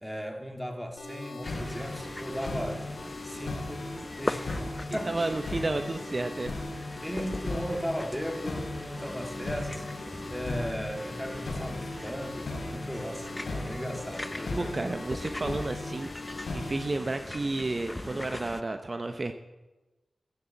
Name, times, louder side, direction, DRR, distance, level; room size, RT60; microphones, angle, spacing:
voice 1, 0.0-2.8 3.2-4.6 4.9-5.4 7.0-14.9, equal, ahead, 3 dB, 3.0 m, -37 dB
sound 1, 1.0-17.0, left 2 dB, 85° left, 3.3 m, -38 dB
sound 2, 1.4-18.6, left 1 dB, 25° left, 0.7 m, -40 dB
voice 2, 4.9-6.5 14.6-16.1 16.5-19.3, right 2 dB, 45° right, 7 dB, 0.9 m, -31 dB
13.0 x 11.0 x 7.8 m, 1.1 s
cardioid pair, 50°, 0 cm